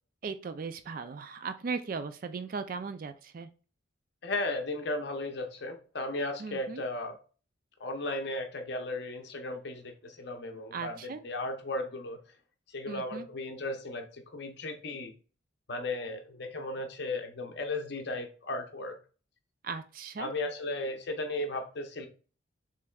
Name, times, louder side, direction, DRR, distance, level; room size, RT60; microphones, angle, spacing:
voice 1, 0.2-3.5 6.4-6.8 10.7-11.2 12.9-13.3 19.6-20.3, right 5 dB, 45° right, 11 dB, 0.3 m, -37 dB
voice 2, 4.2-7.2 7.8-12.2 12.7-15.1 15.7-19.0 20.2-22.1, left 2 dB, 55° left, 4 dB, 0.8 m, -35 dB
6.8 x 3.2 x 2.3 m, 0.37 s
head